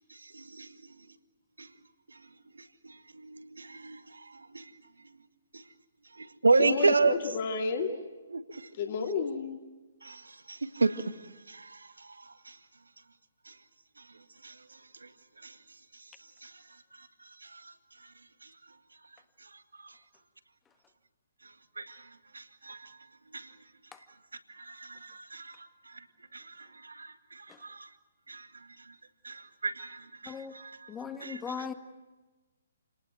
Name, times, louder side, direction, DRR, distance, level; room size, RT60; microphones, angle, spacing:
voice 1, 0.3-0.7 1.6-1.7 3.1-4.6 6.2-7.1 8.3-8.6 10.0-10.2 10.5-11.0 11.5-11.8 12.0-12.1 14.4-14.5 15.4-15.5 16.4-16.5 17.5-17.6 21.8-22.0 22.3-22.8 23.3-23.5 24.6-25.6 26.3-27.9 28.3-28.5 29.2-30.8 31.2-31.4, right 3 dB, 70° right, 1.9 m, -31 dB
voice 2, 6.6-7.9 8.7-9.6, left 5 dB, 40° left, 2.5 m, -31 dB
voice 3, 30.9-31.7, left 6 dB, 10° left, 1.6 m, -38 dB
28.5 x 19.0 x 9.3 m
figure-of-eight pair, 130°, 0 cm